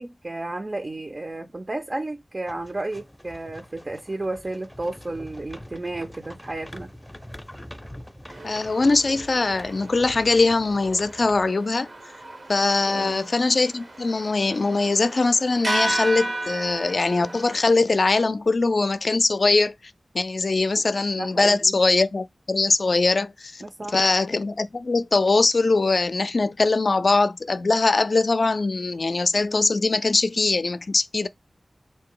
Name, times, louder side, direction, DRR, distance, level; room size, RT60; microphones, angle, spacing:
voice 1, 0.0-6.9 12.9-13.2 21.2-21.7 23.6-24.1, right 2 dB, 45° right, 0.4 m, -32 dB
sound 1, 2.4-11.5, equal, 10° left, 0.5 m, -44 dB
sound 2, 8.3-17.6, right 2 dB, 75° right, 0.8 m, -34 dB
voice 2, 8.4-11.9 12.5-19.7 20.1-23.6 23.9-31.3, left 3 dB, 65° left, 0.3 m, -21 dB
3.5 x 2.6 x 3.7 m
wide cardioid pair, 60°, 0 cm